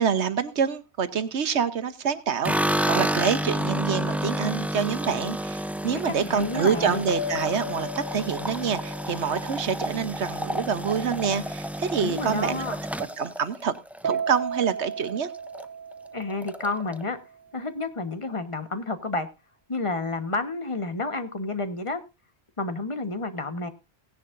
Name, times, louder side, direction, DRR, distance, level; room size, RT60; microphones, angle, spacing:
voice 1, 0.0-2.5 2.9-12.6 13.2-13.7 14.0-15.3, right 7 dB, 80° right, 12 dB, 1.3 m, -26 dB
sound 1, 2.4-14.7 15.0-15.7 15.9-16.0 16.3-17.0, equal, ahead, 0.4 m, -30 dB
voice 2, 5.9-7.0 12.0-12.8 16.1-17.2 17.5-19.3 19.7-22.0 22.6-23.7, left 3 dB, 30° left, 9 dB, 1.3 m, -30 dB
sound 2, 7.1-10.6 14.0-17.1, right 2 dB, 50° right, 1.3 m, -35 dB
18.0 x 10.5 x 2.6 m, 0.26 s
omnidirectional pair, 1.1 m